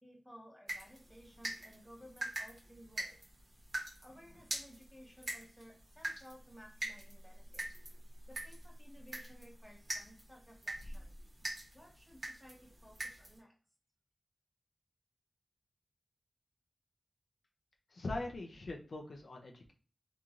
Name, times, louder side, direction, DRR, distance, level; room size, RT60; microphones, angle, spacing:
voice 1, 0.0-3.2 4.0-7.6 8.3-11.1 11.7-13.5, equal, ahead, -1 dB, 0.9 m, -57 dB
sound 1, 0.7-13.4, right 1 dB, 60° right, 1.1 m, -45 dB
voice 2, 17.9-19.7, left 2 dB, 70° left, 2 dB, 0.5 m, -42 dB
3.0 x 2.6 x 2.4 m, 0.38 s
wide cardioid pair, 90°, 0 cm